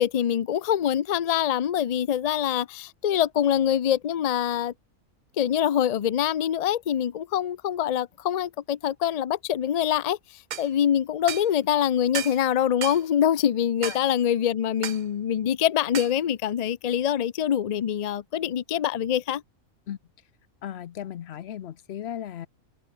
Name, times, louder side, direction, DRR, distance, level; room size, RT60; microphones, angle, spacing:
voice 1, 0.0-4.7 5.4-10.2 10.6-19.4, left 10 dB, 85° left, 0.3 m, -24 dB
sound 1, 10.5-10.7 11.3-11.5 12.1-12.4 12.8-13.0 13.8-14.0 14.8-15.0 15.9-16.2, right 10 dB, 75° right, 0.4 m, -33 dB
voice 2, 20.6-22.5, left 10 dB, 60° left, 0.8 m, -36 dB
omnidirectional pair, 1.4 m